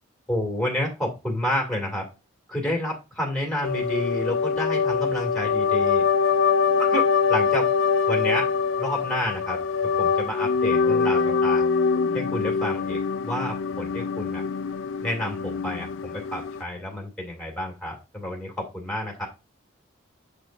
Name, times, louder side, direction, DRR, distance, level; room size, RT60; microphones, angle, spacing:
voice 1, 0.3-2.1 2.5-6.0 6.8-7.7 8.1-8.5 8.8-9.6 10.0-11.7 12.1-14.4 15.0-19.3, left 1 dB, 5° left, -1 dB, 1.9 m, -30 dB
sound 1, 3.6-16.6, left 5 dB, 70° left, 0.5 m, -24 dB
7.6 x 5.0 x 2.5 m, 0.25 s
head